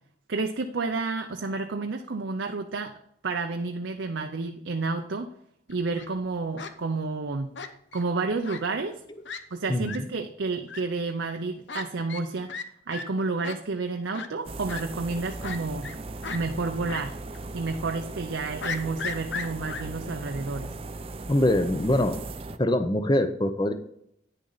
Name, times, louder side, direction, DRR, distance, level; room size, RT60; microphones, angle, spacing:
voice 1, 0.3-2.9 3.2-5.3 5.7-7.5 7.9-9.0 9.5-12.6 12.9-15.9 16.3-17.2 17.5-20.7, right 3 dB, 80° right, 5 dB, 0.6 m, -30 dB
Fowl, 5.7-6.1 6.6-6.7 7.5-8.0 8.4-8.6 8.9-9.0 9.2-9.4 9.8-10.0 10.7-10.8 11.7-11.8 12.1-12.2 12.5-12.6 12.9-13.0 13.4-13.6 14.1-14.3 14.7-14.8 15.4-16.0 16.2-16.4 16.9-17.0 17.3-17.4 18.6-19.8, left 5 dB, 75° left, 0.8 m, -35 dB
sound 1, 14.4-22.6, right 2 dB, 30° right, 0.5 m, -38 dB
voice 2, 21.3-22.2 22.6-23.7, left 1 dB, 25° left, 9 dB, 0.6 m, -23 dB
9.9 x 6.6 x 4.0 m, 0.72 s
head